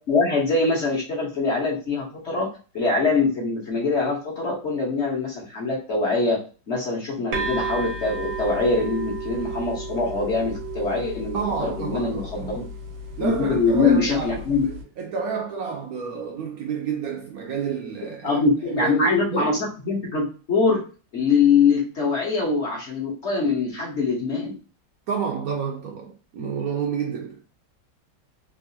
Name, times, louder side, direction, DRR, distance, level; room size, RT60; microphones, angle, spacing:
voice 1, 0.1-2.5 2.7-6.4 6.7-12.6 13.2-14.6 18.2-20.8 21.1-24.6, left 4 dB, 45° left, 1.2 m, -23 dB
sound 1, 7.3-14.8, right 3 dB, 85° right, 1.7 m, -33 dB
voice 2, 11.3-12.6 13.2-18.4 18.8-19.6 25.1-27.4, right 6 dB, 70° right, 0.9 m, -30 dB
3.7 x 2.7 x 2.7 m
omnidirectional pair, 1.9 m